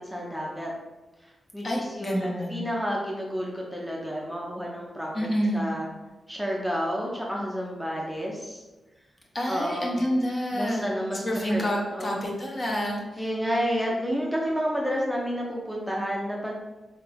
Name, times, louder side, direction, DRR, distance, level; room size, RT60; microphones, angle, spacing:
voice 1, 0.1-0.7 1.5-5.1 5.5-5.9 6.3-8.6 9.5-10.0 10.5-11.2 11.5-11.6 11.9-12.3 13.2-16.5, equal, ahead, -3 dB, 0.6 m, -30 dB
voice 2, 1.6-2.7 5.1-5.6 9.3-10.9 11.2-13.3, equal, 35° left, -1 dB, 0.9 m, -28 dB
3.9 x 3.3 x 3.3 m, 1.1 s
wide cardioid pair, 100°, 0 cm